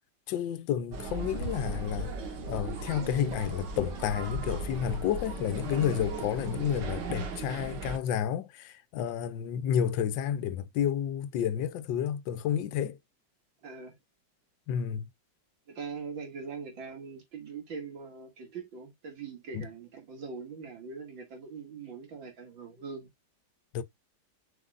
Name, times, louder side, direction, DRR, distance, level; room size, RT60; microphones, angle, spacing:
voice 1, 0.3-2.1 2.5-13.0 14.7-15.1 19.5-19.7 23.7-23.8, left 9 dB, 80° left, 1.4 m, -30 dB
sound 1, 0.9-8.0, right 3 dB, 70° right, 1.9 m, -36 dB
voice 2, 13.6-13.9 15.7-23.1, right 5 dB, 85° right, 2.8 m, -42 dB
7.7 x 5.3 x 2.4 m
omnidirectional pair, 2.0 m